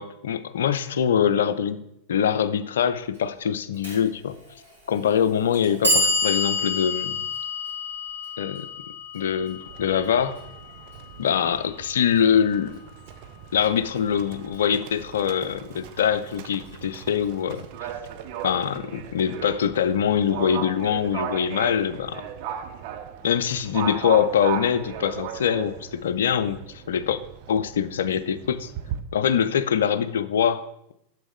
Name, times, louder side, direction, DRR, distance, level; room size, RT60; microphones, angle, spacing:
voice 1, 0.0-1.8 2.1-4.4 4.9-7.3 8.4-8.7 9.1-10.4 11.2-12.7 13.5-17.7 18.4-22.3 23.2-27.2 27.5-28.7 29.1-30.9, left 8 dB, 60° left, 13 dB, 0.4 m, -24 dB
Clock, 3.8-3.9 4.9-5.0 5.5-11.6, left 2 dB, 90° right, 3.1 m, -28 dB
Livestock farm animals working animals, 9.6-29.0, right 9 dB, 45° right, 0.5 m, -37 dB
7.2 x 6.0 x 3.6 m, 0.81 s
figure-of-eight pair, 90°, 0 cm